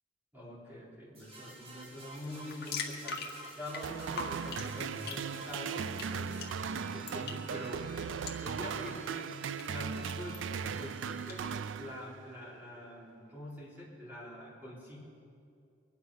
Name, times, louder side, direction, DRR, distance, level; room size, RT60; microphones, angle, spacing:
voice 1, 0.3-3.3 3.6-6.5 6.9-7.9 8.4-11.5 11.8-15.0, left 1 dB, 10° right, -7 dB, 4.3 m, -45 dB
sound 1, 1.1-11.7, right 2 dB, 30° right, 3.9 m, -52 dB
sound 2, 2.2-11.4, left 5 dB, 60° left, 1.8 m, -45 dB
sound 3, 3.8-12.4, right 6 dB, 90° right, 0.4 m, -38 dB
24.0 x 9.8 x 5.7 m, 2.5 s
head